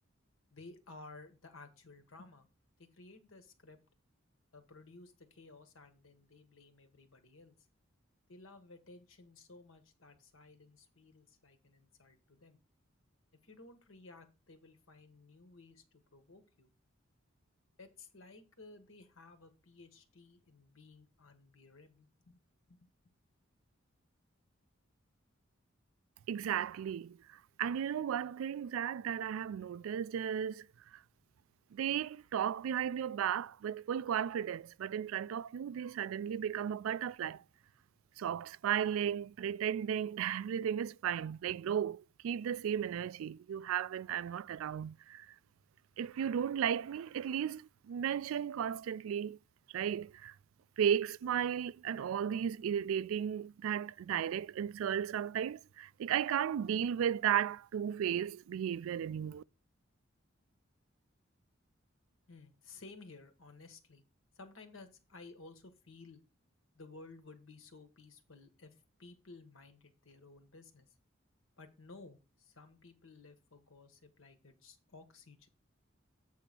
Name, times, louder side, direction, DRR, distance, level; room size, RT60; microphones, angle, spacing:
voice 1, 0.5-2.5 2.8-3.8 4.5-7.6 8.3-12.6 13.4-15.8 16.1-16.7 17.8-22.9 62.3-64.0 64.3-66.2 66.7-70.9 71.6-75.5, left 3 dB, 75° left, 1.4 m, -56 dB
voice 2, 26.3-31.0 31.7-37.4 38.2-45.4 46.0-49.4 49.7-50.4 50.8-59.4, right 9 dB, 85° right, 0.3 m, -35 dB
8.3 x 3.9 x 6.0 m
head